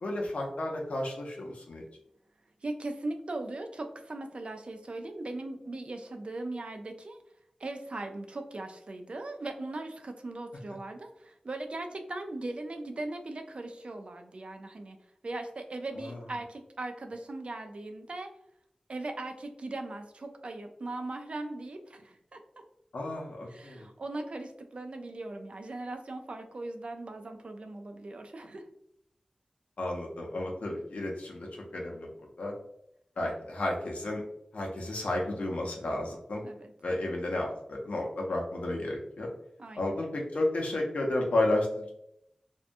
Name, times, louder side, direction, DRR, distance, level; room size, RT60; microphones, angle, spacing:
voice 1, 0.0-1.8 16.0-16.2 22.9-23.9 29.8-31.5 31.7-32.1 32.4-32.5 33.2-34.2 34.5-36.4 36.8-39.3 39.8-41.9, left 1 dB, 85° left, -1 dB, 0.6 m, -32 dB
voice 2, 2.6-7.2 7.6-15.0 15.2-18.3 18.9-22.4 23.5-28.6 36.4-36.7 39.6-40.0, right 2 dB, 55° right, 5 dB, 0.4 m, -39 dB
2.7 x 2.2 x 2.5 m, 0.76 s
wide cardioid pair, 85°, 2 cm